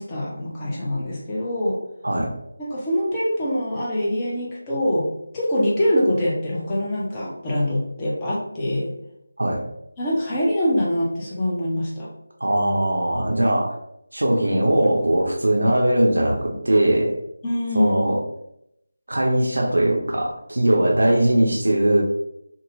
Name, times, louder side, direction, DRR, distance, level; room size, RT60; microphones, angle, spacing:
voice 1, 0.0-1.8 2.6-5.1 5.3-8.9 10.0-12.1 17.4-17.9, left 1 dB, 20° left, -6 dB, 0.7 m, -24 dB
voice 2, 12.4-13.7 14.1-17.1 17.7-18.2 19.1-22.0, right 1 dB, 75° right, 0 dB, 0.6 m, -20 dB
3.7 x 2.1 x 2.7 m, 0.79 s
figure-of-eight pair, 165°, 0 cm